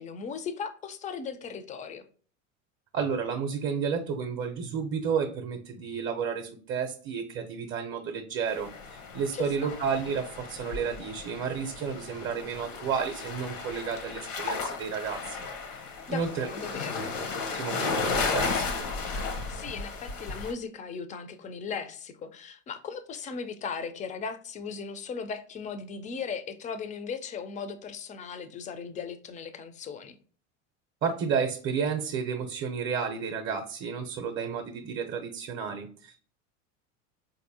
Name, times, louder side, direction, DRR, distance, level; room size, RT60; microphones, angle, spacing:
voice 1, 0.0-2.0 9.3-9.7 16.1-17.0 19.5-30.2, left 5 dB, 20° left, 0.3 m, -37 dB
voice 2, 2.9-15.5 16.1-16.5 17.5-18.7 31.0-36.2, right 6 dB, 35° right, 0.6 m, -31 dB
sound 1, 8.5-20.5, left 4 dB, 85° left, 0.9 m, -34 dB
4.0 x 2.6 x 2.6 m
hypercardioid pair, 90°, 38 cm